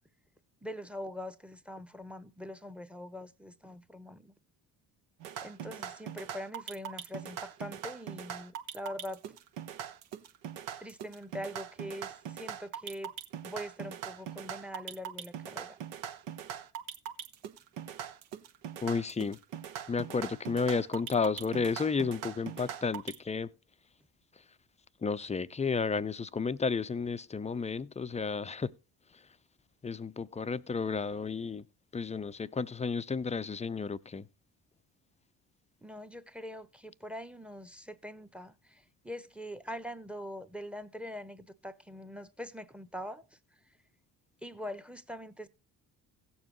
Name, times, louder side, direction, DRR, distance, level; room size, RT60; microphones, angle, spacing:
voice 1, 0.6-4.3 5.4-9.3 10.8-13.1 13.4-15.8 35.8-43.4 44.4-45.5, equal, ahead, 0.9 m, -43 dB
sound 1, 5.2-23.1, right 9 dB, 70° right, 1.1 m, -41 dB
voice 2, 18.8-19.4 19.9-23.5 25.0-28.7 29.8-31.6 31.9-34.3, left 5 dB, 15° left, 0.5 m, -32 dB
16.5 x 7.0 x 3.0 m
hypercardioid pair, 50°, 50 cm